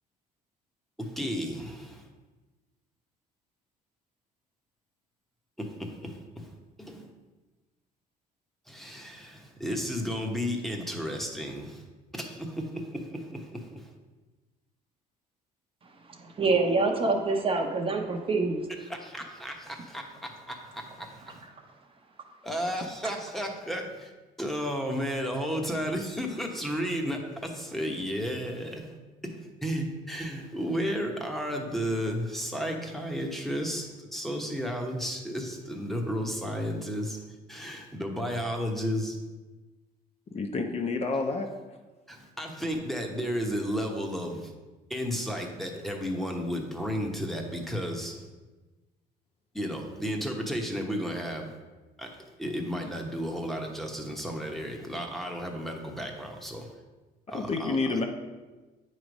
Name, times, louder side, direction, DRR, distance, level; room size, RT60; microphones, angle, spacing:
voice 1, 1.0-2.1 5.6-6.5 6.8-7.1 8.7-11.8 12.1-13.9 18.9-21.4 22.4-24.1 24.4-28.9 29.2-37.2 37.5-39.2 42.1-44.5 44.9-48.2 49.5-51.5 52.0-52.1 52.4-56.7 57.3-58.0, equal, ahead, 2 dB, 1.0 m, -33 dB
voice 2, 16.2-18.7, right 3 dB, 35° right, 3 dB, 0.8 m, -26 dB
voice 3, 40.3-41.5 57.3-58.1, left 3 dB, 40° left, 4 dB, 0.7 m, -29 dB
8.6 x 3.2 x 5.2 m, 1.2 s
cardioid pair, 110°, 17 cm